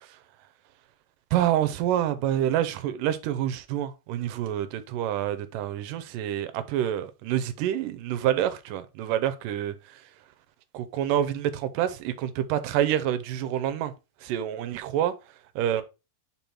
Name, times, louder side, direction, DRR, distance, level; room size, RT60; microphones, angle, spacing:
voice 1, 1.3-9.7 10.7-13.9 14.2-15.1 15.6-15.8, right 11 dB, 85° right, 2.3 m, -27 dB
5.4 x 4.9 x 4.3 m
omnidirectional pair, 3.9 m